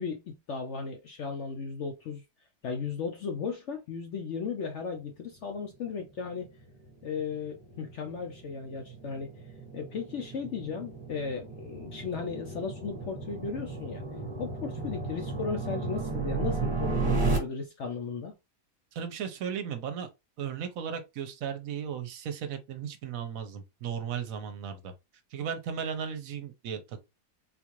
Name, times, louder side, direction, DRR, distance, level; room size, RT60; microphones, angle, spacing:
voice 1, 0.0-2.2 2.6-6.5 7.0-9.3 9.7-14.0 14.4-18.3, left 5 dB, 65° left, 0.7 m, -36 dB
sound 1, 6.3-17.4, right 3 dB, 20° right, 1.3 m, -34 dB
voice 2, 18.9-20.1 20.4-24.9 25.3-27.0, right 7 dB, 65° right, 1.0 m, -36 dB
3.8 x 2.4 x 2.9 m
omnidirectional pair, 1.7 m